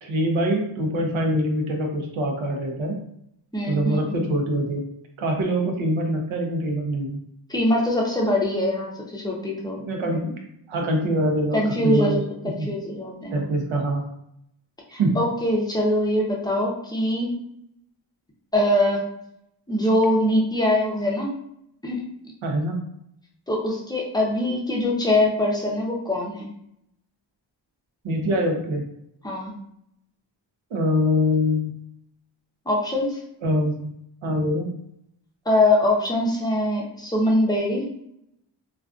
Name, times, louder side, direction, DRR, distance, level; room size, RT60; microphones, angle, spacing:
voice 1, 0.0-3.0 3.7-4.8 5.2-7.2 9.8-10.3 10.7-12.2 12.6-12.7 13.3-14.1 14.9-15.2 22.4-22.8 28.0-28.8 30.7-31.7 33.4-33.9 34.2-34.7, equal, 90° right, 1 dB, 0.7 m, -24 dB
voice 2, 3.5-4.2 7.5-10.2 11.5-12.2 12.4-13.6 14.9-17.4 18.5-19.0 19.7-21.3 21.8-22.1 23.5-26.5 29.2-29.5 32.7-33.2 35.5-37.9, left 1 dB, 10° left, -2 dB, 0.5 m, -23 dB
2.4 x 2.3 x 2.3 m, 0.75 s
wide cardioid pair, 115°, 46 cm